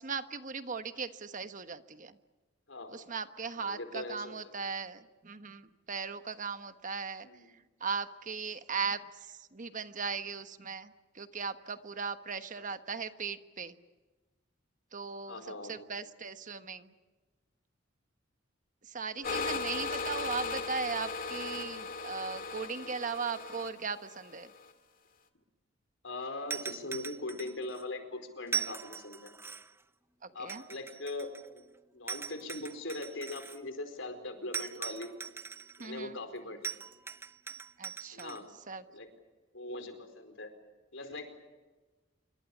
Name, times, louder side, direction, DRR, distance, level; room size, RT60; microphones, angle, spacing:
voice 1, 0.0-2.2 2.9-13.7 14.9-16.9 18.8-24.5 30.2-30.6 35.8-36.2 37.8-38.8, right 5 dB, 40° right, 10 dB, 1.2 m, -38 dB
voice 2, 2.7-3.1 3.5-4.5 7.2-7.5 15.3-15.7 19.2-19.5 22.8-23.0 26.0-29.3 30.3-31.6 31.9-35.1 35.8-36.7 38.1-38.5 38.9-39.1 39.5-40.5 40.9-41.4, left 2 dB, 75° left, 8 dB, 4.6 m, -41 dB
sound 1, 19.2-24.7, left 4 dB, 45° left, 2.2 m, -37 dB
sound 2, 26.5-27.8 28.5-29.8 30.5-31.6 32.1-33.6 34.5-35.9 36.6-38.4, right 6 dB, 15° right, 0.7 m, -40 dB
27.0 x 24.0 x 7.3 m, 1.2 s
head